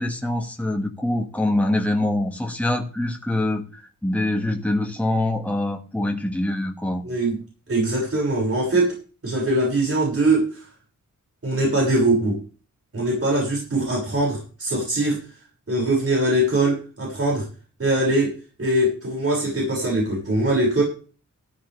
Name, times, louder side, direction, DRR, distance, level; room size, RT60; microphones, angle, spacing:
voice 1, 0.0-7.0, left 1 dB, 5° left, 2 dB, 2.0 m, -24 dB
voice 2, 7.0-7.4 7.7-10.7 11.4-12.4 12.9-15.4 15.7-17.5 17.8-20.8, right 1 dB, 45° right, -3 dB, 6.5 m, -22 dB
13.5 x 13.0 x 3.5 m, 0.36 s
wide cardioid pair, 120°, 32 cm